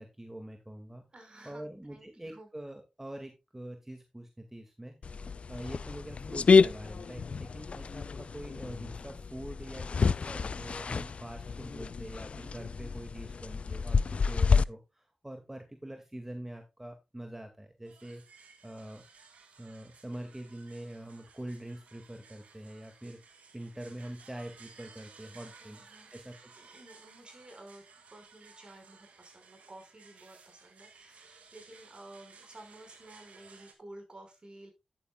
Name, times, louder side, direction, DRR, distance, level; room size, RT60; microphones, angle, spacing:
voice 1, 0.0-1.0 1.5-5.1 5.5-19.0 19.6-26.6, right 1 dB, 15° right, 4 dB, 2.1 m, -45 dB
voice 2, 1.1-2.5 25.6-26.1 26.5-27.8 28.1-34.7, right 1 dB, 45° right, 5 dB, 5.1 m, -52 dB
sound 1, 5.0-14.6, left 5 dB, 60° left, 0.4 m, -29 dB
sound 2, 17.9-33.7, right 5 dB, 85° right, 1.9 m, -57 dB
10.5 x 9.3 x 2.3 m, 0.24 s
cardioid pair, 45°, 2 cm